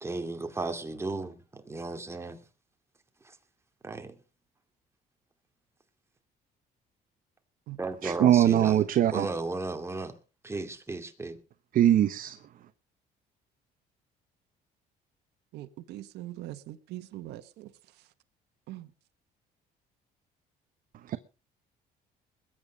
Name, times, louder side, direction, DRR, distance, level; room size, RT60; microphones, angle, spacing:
voice 1, 0.0-2.4 3.8-4.1 7.8-8.8 9.1-10.1 10.4-11.4, right 3 dB, 15° right, 2.3 m, -35 dB
voice 2, 8.0-9.3 11.7-12.4 21.1-21.2, right 11 dB, 55° right, 0.8 m, -22 dB
voice 3, 15.5-18.1 18.7-18.9, right 15 dB, 80° right, 1.2 m, -42 dB
20.5 x 8.9 x 5.2 m
cardioid pair, 110°, 17 cm